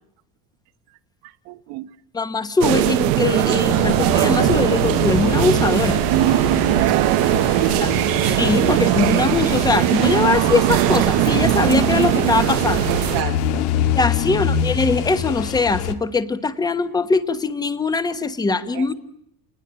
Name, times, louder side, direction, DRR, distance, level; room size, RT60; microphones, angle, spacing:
voice 1, 1.2-1.9 7.5-7.9 12.9-13.6 18.7-18.9, right 16 dB, 80° right, 9 dB, 1.3 m, -30 dB
voice 2, 2.1-6.0 7.8-7.9 8.2-12.9 13.9-18.9, left 3 dB, 10° left, 12 dB, 1.1 m, -21 dB
sound 1, 2.6-13.2, right 17 dB, 65° right, 1.0 m, -19 dB
sound 2, 3.7-15.9, left 9 dB, 90° left, 2.4 m, -26 dB
29.0 x 20.0 x 8.8 m, 0.78 s
cardioid pair, 175°, 38 cm